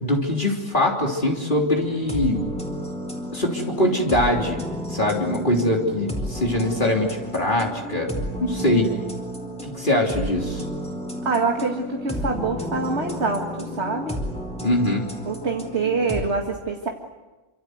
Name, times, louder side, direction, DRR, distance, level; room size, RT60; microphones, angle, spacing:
voice 1, 0.0-2.4 3.3-4.6 4.9-8.1 8.4-8.9 9.6-10.6 14.6-15.1, left 1 dB, 40° left, 0 dB, 3.6 m, -22 dB
sound 1, 1.7-16.2, equal, 5° left, 4.6 m, -32 dB
voice 2, 11.3-14.2 15.3-16.9, right 4 dB, 60° right, 2 dB, 2.4 m, -25 dB
28.0 x 26.0 x 8.0 m, 1.2 s
omnidirectional pair, 1.3 m